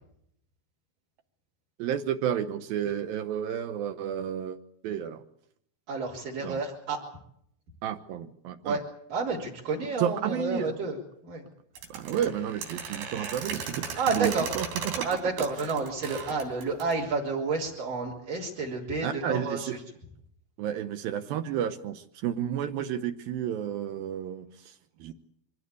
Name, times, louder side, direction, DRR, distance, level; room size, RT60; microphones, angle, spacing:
voice 1, 1.8-5.2 6.4-6.6 7.8-8.8 10.0-10.7 11.9-15.1 15.6-15.7 19.0-19.7 20.6-25.1, right 10 dB, 70° right, 10 dB, 2.4 m, -31 dB
voice 2, 5.9-7.0 8.6-8.8 9.1-11.0 11.2-11.4 14.0-14.5 15.0-19.8, right 4 dB, 50° right, 4 dB, 4.9 m, -30 dB
sound 1, 11.8-17.0, right 5 dB, 85° right, 5.6 m, -36 dB
25.0 x 16.5 x 8.5 m, 0.71 s
omnidirectional pair, 5.1 m